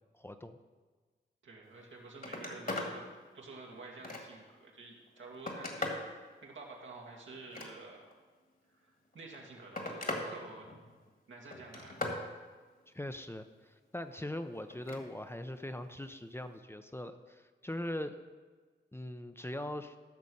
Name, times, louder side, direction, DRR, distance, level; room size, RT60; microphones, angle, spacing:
voice 1, 0.1-0.6 12.9-18.2 18.9-20.0, left 1 dB, 10° left, 9 dB, 0.6 m, -41 dB
voice 2, 1.4-3.1 3.3-8.0 8.7-10.7 11.3-12.0, right 3 dB, 85° right, -1 dB, 2.1 m, -50 dB
Telephone, 1.7-1.8 2.1-2.9 3.4-4.5 5.1-6.1 7.3-8.1 9.1-10.3 10.6-11.1 11.5-12.2 14.7-15.0 16.4-16.6, left 2 dB, 45° left, 1.9 m, -39 dB
14.0 x 6.2 x 5.4 m, 1.4 s
cardioid pair, 65°, 19 cm